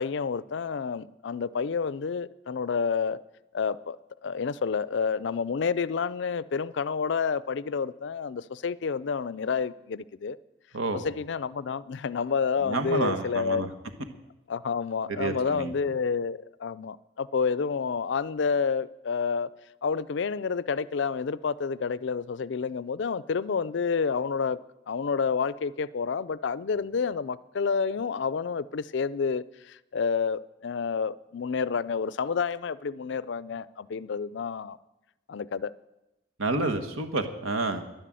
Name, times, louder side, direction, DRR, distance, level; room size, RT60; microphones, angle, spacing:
voice 1, 0.0-3.2 3.5-4.0 4.2-10.4 11.0-13.7 14.5-19.5 19.8-24.6 24.9-34.8 35.3-35.7 37.7-37.8, left 5 dB, 60° left, 0.4 m, -29 dB
voice 2, 10.7-11.1 12.6-13.7 15.1-15.7 36.4-37.8, right 3 dB, 85° right, 1.3 m, -29 dB
11.0 x 10.5 x 7.6 m
head